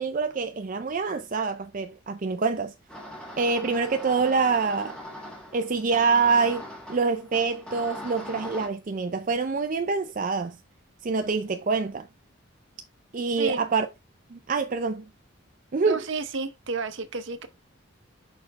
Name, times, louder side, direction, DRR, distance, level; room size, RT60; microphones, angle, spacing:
voice 1, 0.0-2.7 3.4-4.9 5.5-6.6 6.9-10.6 11.0-12.1 13.1-13.9 14.3-15.1 15.7-16.0, right 4 dB, 40° right, 0.4 m, -25 dB
sound 1, 2.9-8.7, equal, 5° left, 1.8 m, -40 dB
voice 2, 15.9-17.5, right 4 dB, 60° right, 0.8 m, -31 dB
5.8 x 4.4 x 4.1 m
head